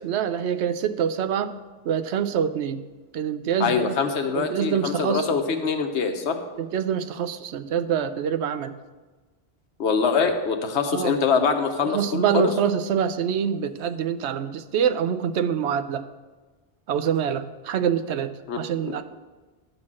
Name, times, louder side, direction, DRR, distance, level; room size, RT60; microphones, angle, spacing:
voice 1, 0.0-1.5 1.8-2.8 3.1-3.9 4.3-5.3 6.6-8.8 10.9-11.1 11.9-16.0 16.9-19.0, right 8 dB, 85° right, 11 dB, 0.9 m, -25 dB
voice 2, 3.6-6.4 9.8-12.5 18.5-18.6 18.9-19.0, left 5 dB, 85° left, 5 dB, 1.2 m, -24 dB
11.0 x 4.1 x 7.4 m, 1.3 s
omnidirectional pair, 1.1 m